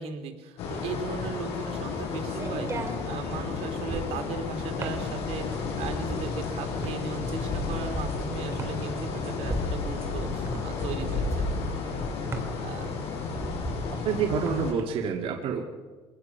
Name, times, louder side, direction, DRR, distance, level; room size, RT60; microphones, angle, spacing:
voice 1, 0.0-11.9 12.3-12.9, right 5 dB, 75° right, 6 dB, 2.8 m, -38 dB
sound 1, 0.6-14.7, left 4 dB, 75° left, 5.9 m, -32 dB
sound 2, 1.1-14.8, right 3 dB, 25° right, 2.6 m, -38 dB
voice 2, 14.0-15.6, right 6 dB, 60° right, 0 dB, 2.4 m, -27 dB
24.5 x 18.5 x 5.9 m, 1.3 s
cardioid pair, 140°, 11 cm